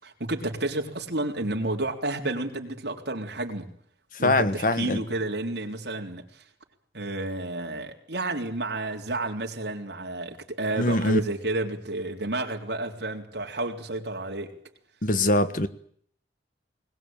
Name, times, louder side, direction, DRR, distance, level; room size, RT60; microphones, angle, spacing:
voice 1, 0.0-3.7 4.2-6.4 6.9-14.5, right 2 dB, 60° right, 3.7 m, -31 dB
voice 2, 4.2-5.0 10.8-11.2 15.0-15.7, left 1 dB, 45° left, 1.3 m, -23 dB
21.0 x 20.0 x 9.0 m
head